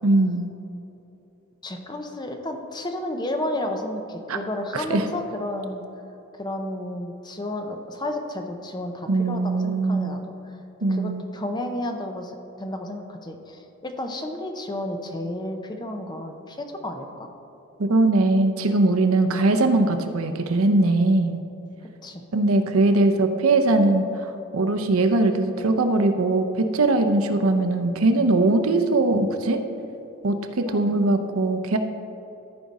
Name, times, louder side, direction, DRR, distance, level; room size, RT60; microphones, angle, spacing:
voice 1, 0.0-0.5 4.3-4.4 4.7-5.1 9.1-10.2 10.8-11.2 17.8-21.4 22.3-29.6 30.2-31.8, right 2 dB, 70° right, 7 dB, 0.6 m, -21 dB
voice 2, 1.6-5.8 6.3-10.3 10.9-17.3 21.8-22.2 30.7-30.9, left 1 dB, 20° left, 4 dB, 0.6 m, -32 dB
14.0 x 4.9 x 4.1 m, 3.0 s
head